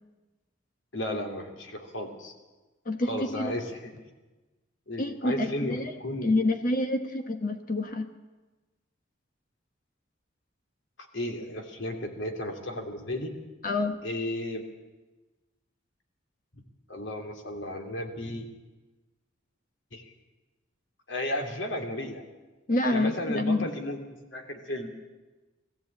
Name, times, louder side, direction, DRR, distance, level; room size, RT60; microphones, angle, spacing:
voice 1, 0.9-2.3 3.1-4.0 4.9-6.3 11.1-13.3 14.0-14.6 16.5-16.6 16.9-18.5 19.9-20.1 21.1-22.2 22.9-24.0 24.3-24.9, left 1 dB, 75° left, 4 dB, 2.8 m, -34 dB
voice 2, 2.9-3.5 5.0-5.9 6.2-8.1 13.6-14.0 22.7-23.7, left 2 dB, 45° left, 7 dB, 1.2 m, -27 dB
21.0 x 14.5 x 8.6 m, 1.2 s
head